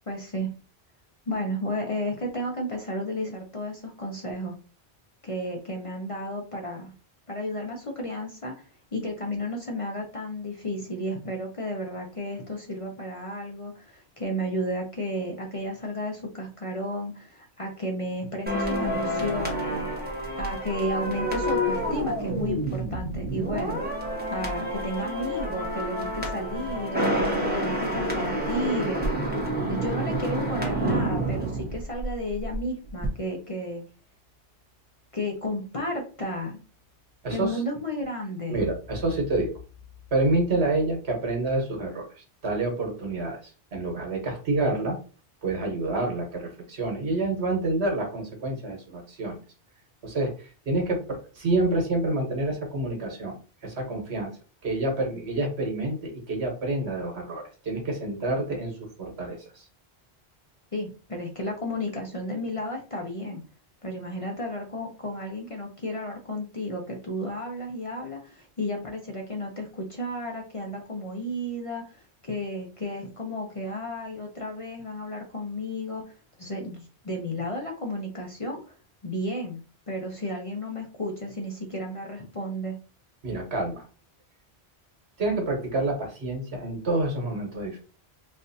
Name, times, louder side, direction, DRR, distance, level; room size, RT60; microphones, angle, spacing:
voice 1, 0.1-0.5 1.3-4.6 5.2-6.9 7.3-19.8 20.3-23.8 24.3-29.0 29.7-33.8 35.1-36.6 37.3-38.6 60.7-63.4 63.8-78.8 79.0-82.7, left 1 dB, 40° left, 1 dB, 0.6 m, -33 dB
sound 1, 18.5-32.6 32.9-33.1, right 1 dB, 10° right, 0.9 m, -28 dB
voice 2, 37.2-37.6 38.5-39.5 40.1-45.0 45.4-49.4 50.0-53.3 53.6-54.4 54.6-59.6 83.2-83.8 85.2-87.8, right 2 dB, 75° right, 2 dB, 1.4 m, -28 dB
4.2 x 2.5 x 2.6 m, 0.36 s
omnidirectional pair, 1.1 m